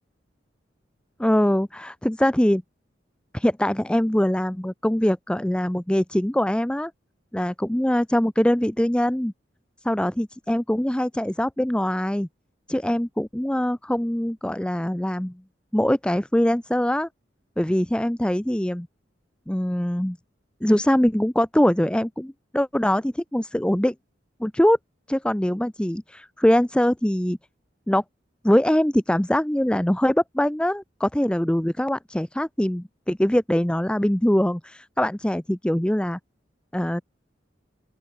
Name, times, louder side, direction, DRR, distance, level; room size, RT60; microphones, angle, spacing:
voice 1, 1.2-2.6 3.3-6.9 7.3-9.3 9.8-12.3 12.7-15.3 15.7-17.1 17.6-18.9 19.5-20.2 20.6-23.9 24.4-24.8 25.1-27.4 27.9-28.0 28.4-36.2 36.7-37.0, equal, 5° left, 0.5 m, -22 dB
open air
head